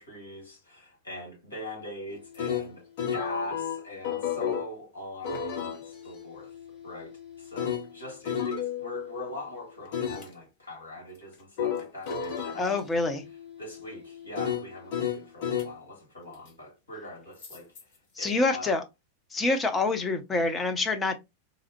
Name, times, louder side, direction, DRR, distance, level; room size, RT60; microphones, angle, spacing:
voice 1, 0.0-6.6 6.8-13.2 13.6-18.8, left 1 dB, 75° left, 1.7 m, -42 dB
sound 1, 2.1-4.7 5.2-9.3 9.9-10.3 11.6-15.7 17.4-17.8, left 8 dB, 50° left, 0.9 m, -33 dB
voice 2, 12.6-13.2 18.2-18.8 19.3-21.2, left 3 dB, 15° left, 0.7 m, -26 dB
3.9 x 2.1 x 2.8 m
figure-of-eight pair, 90°, 0 cm